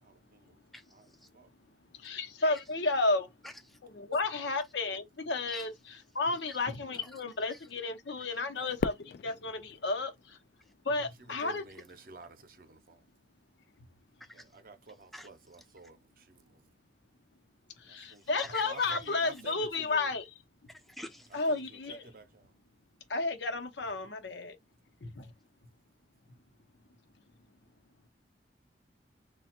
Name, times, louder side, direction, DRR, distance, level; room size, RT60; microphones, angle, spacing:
voice 1, 0.0-0.6 0.9-1.1 1.3-1.5 8.5-8.8 11.2-13.1 14.3-16.7 17.8-20.1 21.3-22.5, right 2 dB, 50° right, 0.7 m, -52 dB
voice 2, 0.7-1.3 3.4-3.8 5.5-5.7 6.5-6.6 6.9-7.2 7.5-7.7 10.6-10.7 14.2-14.4 15.1-15.3 15.6-15.7 18.0-18.6 18.9-19.3 20.7-21.4, left 1 dB, ahead, 0.5 m, -48 dB
voice 3, 2.0-3.3 3.9-5.7 6.1-10.4 10.9-11.6 17.8-20.2 21.3-22.0 23.1-24.6 25.0-25.3, left 3 dB, 75° left, 0.8 m, -32 dB
Fireworks, 8.8-11.1, left 5 dB, 55° left, 0.3 m, -39 dB
3.3 x 2.3 x 4.3 m
head